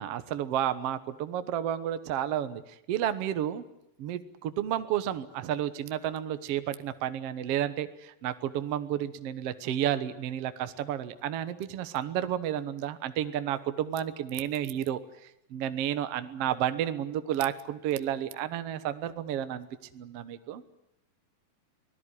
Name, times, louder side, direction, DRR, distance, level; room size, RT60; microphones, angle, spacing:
voice 1, 0.0-2.6 2.9-3.6 4.0-15.0 15.5-19.7 19.9-20.6, right 11 dB, 60° right, 11 dB, 1.7 m, -31 dB
24.5 x 18.0 x 9.9 m, 0.80 s
omnidirectional pair, 4.0 m